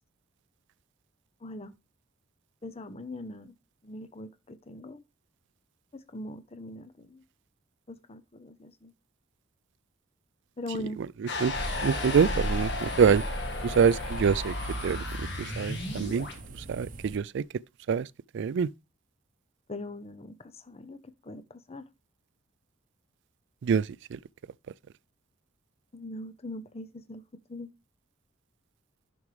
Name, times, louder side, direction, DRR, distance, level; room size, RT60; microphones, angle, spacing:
voice 1, 1.4-1.7 2.6-3.5 3.8-5.0 6.1-7.2 7.9-8.9 10.6-11.0 19.7-21.0 21.2-21.8 25.9-27.2 27.5-27.7, left 1 dB, 30° left, 0.7 m, -41 dB
sound 1, 11.3-16.4, left 2 dB, 60° left, 1.7 m, -33 dB
sound 2, 11.5-17.2, right 2 dB, 40° right, 0.8 m, -42 dB
voice 2, 11.8-13.2 13.6-14.5 14.8-16.3 16.7-17.4 17.9-18.1 18.3-18.7 23.6-23.8, right 6 dB, 60° right, 0.3 m, -25 dB
10.5 x 6.1 x 3.2 m
head